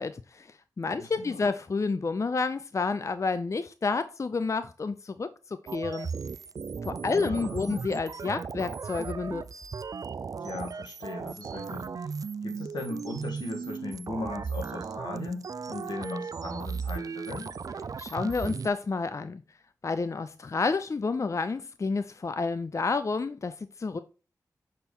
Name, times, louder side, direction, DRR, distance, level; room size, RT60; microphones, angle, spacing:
voice 1, 0.0-6.1 6.8-9.4 18.0-19.4 19.8-24.0, left 4 dB, 45° left, 0.5 m, -30 dB
voice 2, 1.0-1.4 7.0-7.8 10.4-12.1 12.4-17.6, left 2 dB, 85° left, 1.5 m, -38 dB
sound 1, 5.7-18.7, right 5 dB, 55° right, 0.4 m, -36 dB
6.8 x 4.4 x 3.6 m
cardioid pair, 45°, 7 cm